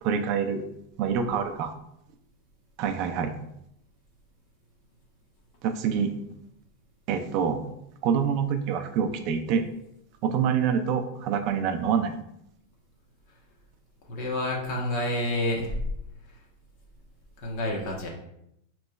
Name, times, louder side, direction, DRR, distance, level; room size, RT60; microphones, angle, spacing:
voice 1, 0.0-0.6 1.0-1.7 2.8-3.3 5.6-6.1 7.1-7.6 8.0-9.6 10.2-12.1, right 7 dB, 35° right, 6 dB, 0.4 m, -26 dB
voice 2, 14.1-15.7 17.4-18.1, left 1 dB, 40° left, -1 dB, 0.9 m, -28 dB
5.2 x 3.0 x 2.3 m, 0.77 s
supercardioid pair, 175°, 0 cm